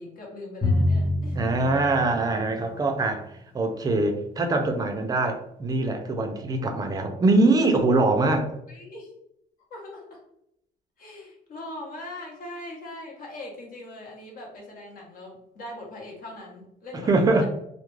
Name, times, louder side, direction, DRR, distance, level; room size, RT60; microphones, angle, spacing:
voice 1, 0.0-1.7 8.7-9.1 9.7-10.2 11.0-17.5, left 1 dB, 55° left, -1 dB, 1.0 m, -41 dB
Drum, 0.6-3.0, left 1 dB, 10° left, 0.8 m, -26 dB
voice 2, 1.4-3.2 3.5-8.5 16.9-17.5, right 2 dB, 25° right, 5 dB, 0.4 m, -23 dB
2.3 x 2.1 x 3.1 m, 0.77 s
cardioid pair, 110°, 17 cm